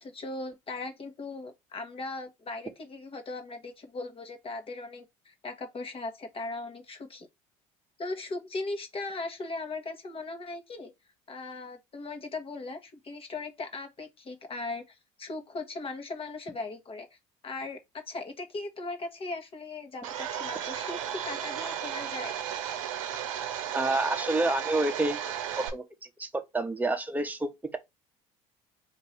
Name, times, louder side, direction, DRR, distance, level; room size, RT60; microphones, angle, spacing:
voice 1, 0.0-7.3 8.0-10.9 11.3-17.2 17.4-22.3, left 3 dB, 35° left, 1.1 m, -38 dB
Domestic sounds home sounds, 20.0-25.7, right 9 dB, 90° right, 0.7 m, -34 dB
voice 2, 23.7-25.2 25.6-25.8 26.2-27.8, right 2 dB, 10° right, 0.9 m, -28 dB
2.9 x 2.7 x 4.3 m
hypercardioid pair, 70°, 16 cm